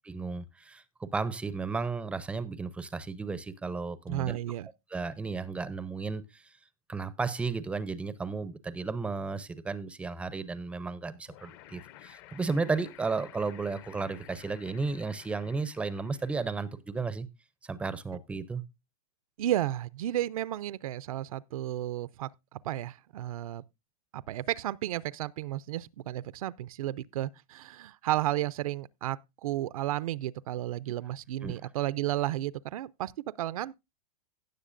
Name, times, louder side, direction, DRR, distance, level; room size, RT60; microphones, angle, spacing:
voice 1, 0.0-4.4 4.9-6.6 6.9-17.3 17.6-18.6 31.4-31.5, right 4 dB, 5° right, 0.4 m, -34 dB
voice 2, 4.1-4.7 19.4-22.3 22.6-23.6 24.1-33.1 33.4-33.7, right 14 dB, 70° right, 0.5 m, -33 dB
sound 1, 11.3-16.7, left 13 dB, 45° left, 0.7 m, -53 dB
17.0 x 6.8 x 2.5 m
supercardioid pair, 150°, 19 cm